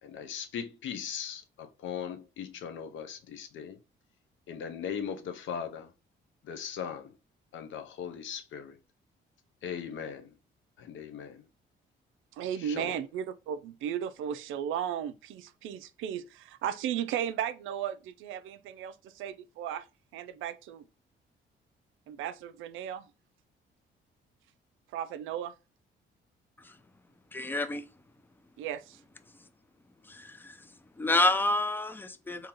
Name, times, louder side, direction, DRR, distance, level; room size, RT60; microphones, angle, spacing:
voice 1, 0.0-3.8 4.5-5.9 6.4-7.1 7.5-8.8 9.6-10.4 10.8-11.5 12.5-13.0, left 7 dB, 75° left, 0.7 m, -39 dB
voice 2, 12.4-19.8 20.1-20.8 22.1-23.0 24.9-25.5 28.6-29.0, right 9 dB, 90° right, 0.4 m, -35 dB
voice 3, 27.3-27.8 30.0-30.7 31.0-32.5, left 2 dB, 10° left, 0.4 m, -29 dB
3.7 x 2.8 x 2.9 m
cardioid pair, 90°, 20 cm